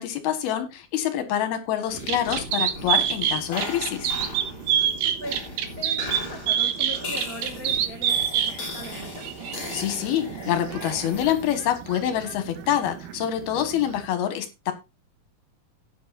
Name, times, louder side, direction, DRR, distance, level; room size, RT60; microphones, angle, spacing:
voice 1, 0.0-4.1 9.7-14.7, left 10 dB, 80° left, 8 dB, 3.4 m, -26 dB
sound 1, 1.8-11.7, left 3 dB, 35° left, 4.8 m, -38 dB
sound 2, 1.9-14.1, right 9 dB, 70° right, 2.7 m, -28 dB
voice 2, 4.7-5.5 5.8-9.3, right 1 dB, 50° right, 0 dB, 1.1 m, -40 dB
15.0 x 9.6 x 2.5 m, 0.24 s
omnidirectional pair, 4.4 m